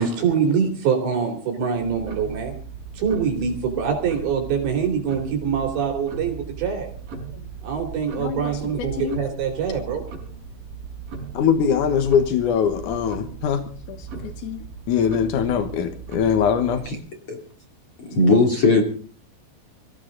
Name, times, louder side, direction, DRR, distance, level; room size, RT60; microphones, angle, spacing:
voice 1, 0.0-2.5 2.9-6.9 7.6-10.0, right 6 dB, 70° right, 3 dB, 5.0 m, -24 dB
Tick-tock, 1.7-17.0, right 5 dB, 50° right, 6.4 m, -37 dB
voice 2, 8.2-9.2 11.3-13.6 13.9-16.8, left 7 dB, 70° left, 8 dB, 2.0 m, -23 dB
voice 3, 18.0-18.8, left 3 dB, 35° left, 2 dB, 3.0 m, -18 dB
24.0 x 15.5 x 3.8 m, 0.43 s
omnidirectional pair, 5.4 m